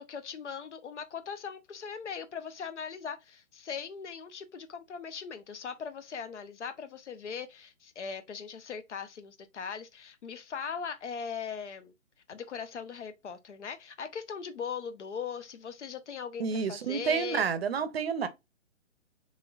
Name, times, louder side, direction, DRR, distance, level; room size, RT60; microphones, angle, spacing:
voice 1, 0.0-11.9 12.3-17.5, left 6 dB, 65° left, 0.7 m, -39 dB
voice 2, 16.4-18.3, right 6 dB, 55° right, 0.6 m, -29 dB
3.1 x 3.1 x 2.3 m
figure-of-eight pair, 140°, 38 cm